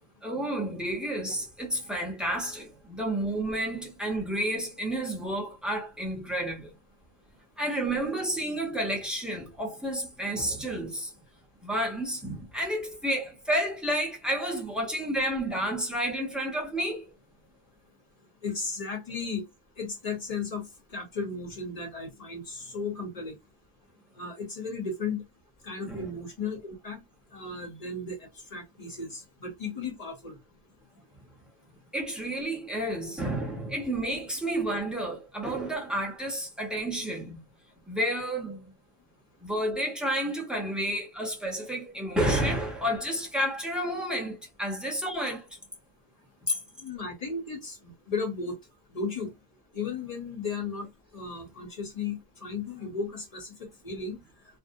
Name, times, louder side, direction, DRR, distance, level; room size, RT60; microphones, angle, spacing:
voice 1, 0.2-6.7 7.6-11.1 11.6-17.0 25.9-26.1 31.9-37.4 37.9-38.7 39.4-45.5 46.5-46.6, right 1 dB, ahead, 0.5 m, -30 dB
voice 2, 18.4-19.4 19.8-20.6 20.9-23.4 24.2-25.2 25.6-27.0 27.3-28.2 28.5-30.4 46.8-48.6 48.9-49.3 49.7-54.2, left 4 dB, 35° left, 0.8 m, -35 dB
2.6 x 2.0 x 2.6 m
omnidirectional pair, 1.3 m